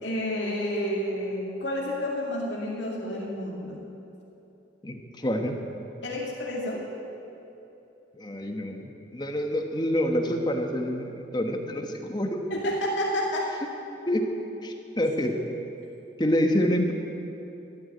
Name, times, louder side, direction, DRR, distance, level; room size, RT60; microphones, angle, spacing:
voice 1, 0.0-3.8 6.0-6.8 12.5-13.5, left 1 dB, 80° left, -3 dB, 2.3 m, -30 dB
voice 2, 4.8-5.6 8.1-12.4 14.1-14.2 14.6-15.4 16.2-16.9, equal, 25° left, 3 dB, 1.2 m, -27 dB
13.5 x 9.8 x 9.6 m, 3.0 s
head